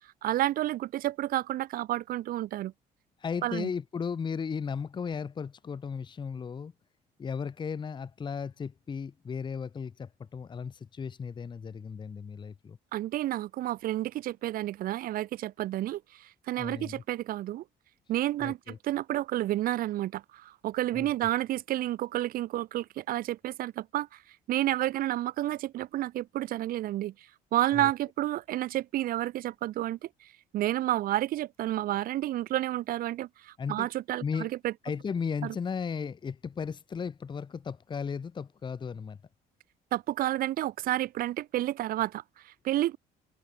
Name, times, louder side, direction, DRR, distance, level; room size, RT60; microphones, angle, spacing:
voice 1, 0.2-2.7 3.4-3.7 12.9-17.6 18.1-24.2 24.5-27.1 27.5-30.3 30.5-34.7 35.4-35.5 39.9-43.0, right 14 dB, 60° right, 0.5 m, -30 dB
voice 2, 3.2-6.7 7.2-12.8 16.6-17.0 18.4-18.8 20.9-21.1 27.7-27.9 33.6-33.9 34.2-34.5 34.8-39.2, left 6 dB, 25° left, 0.8 m, -35 dB
cardioid pair, 110°, 17 cm